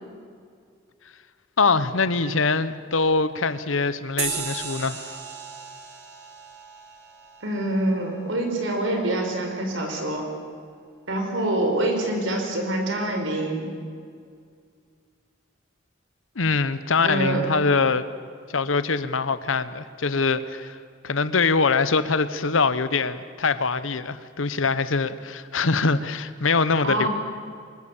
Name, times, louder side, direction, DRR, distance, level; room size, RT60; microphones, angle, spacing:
voice 1, 1.6-5.2 16.4-18.0 18.5-20.8 21.0-27.1, left 4 dB, 80° left, 1.0 m, -23 dB
sound 1, 4.2-9.1, right 6 dB, 55° right, 2.8 m, -36 dB
voice 2, 7.4-10.2 11.1-13.7 17.0-17.4 26.8-27.1, right 1 dB, 70° right, 4.7 m, -25 dB
24.5 x 21.0 x 7.3 m
head